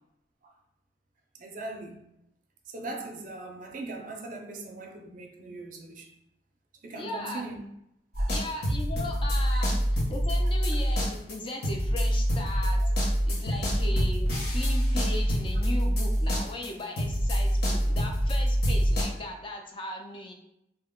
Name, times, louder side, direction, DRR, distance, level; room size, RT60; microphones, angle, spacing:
voice 1, 1.4-2.1 2.7-6.1 6.8-7.6 8.1-8.4 12.8-12.9, right 2 dB, 50° right, 0.4 m, -40 dB
voice 2, 6.9-7.4 8.3-20.3, left 1 dB, 30° left, 0.4 m, -38 dB
sound 1, 8.1-16.7 17.0-19.0, equal, 60° left, 0.8 m, -26 dB
2.7 x 2.1 x 3.5 m
head